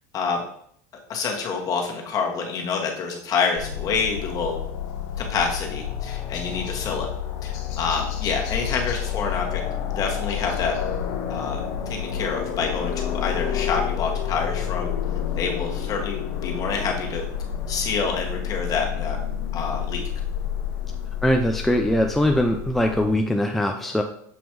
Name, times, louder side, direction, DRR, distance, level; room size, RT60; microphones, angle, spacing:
voice 1, 1.1-4.6 5.2-7.1 7.4-9.6 10.0-10.7 11.3-11.6 11.9-14.9 15.4-17.2 17.7-19.2 19.5-20.0, left 5 dB, 40° left, 1 dB, 1.5 m, -27 dB
sound 1, 3.6-23.2, left 9 dB, 65° left, 1.0 m, -29 dB
voice 2, 21.2-24.0, left 1 dB, ahead, 3 dB, 0.4 m, -21 dB
7.2 x 3.0 x 4.6 m, 0.65 s
supercardioid pair, 120°, 10 cm